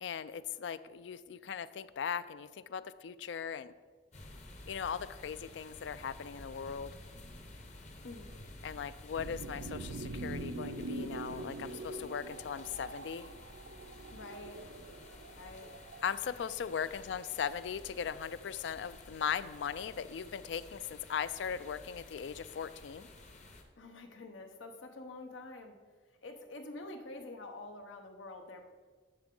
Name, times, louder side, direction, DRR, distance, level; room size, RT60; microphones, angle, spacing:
voice 1, 0.0-3.7 4.7-6.9 8.6-13.3 16.0-23.1, left 7 dB, 70° left, 15 dB, 0.3 m, -38 dB
sound 1, 4.1-23.6, left 1 dB, 40° left, 0.9 m, -52 dB
sound 2, 9.2-16.1, right 2 dB, 70° right, 0.5 m, -44 dB
voice 2, 14.1-14.6 15.3-15.7 16.9-17.1 23.8-25.8 26.2-28.7, left 2 dB, 85° left, 5 dB, 1.0 m, -47 dB
11.0 x 6.8 x 3.8 m, 1.5 s
head